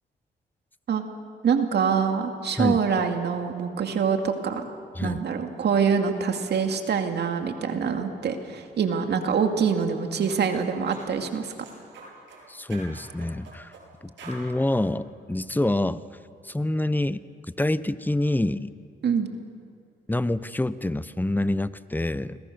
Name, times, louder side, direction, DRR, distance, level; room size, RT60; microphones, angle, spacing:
voice 1, 1.4-4.7 5.0-11.5 19.0-19.3, right 6 dB, 65° right, 5 dB, 2.3 m, -25 dB
sound 1, 9.7-9.9 10.2-10.4 10.9-11.1 11.5-12.4 12.7-13.8 14.2-14.4, right 3 dB, 85° right, 7.9 m, -45 dB
voice 2, 12.5-13.7 14.0-16.0 16.4-18.7 20.1-22.4, left 1 dB, 10° left, 15 dB, 0.9 m, -26 dB
29.0 x 22.0 x 6.8 m, 2.4 s
cardioid pair, 75°, 18 cm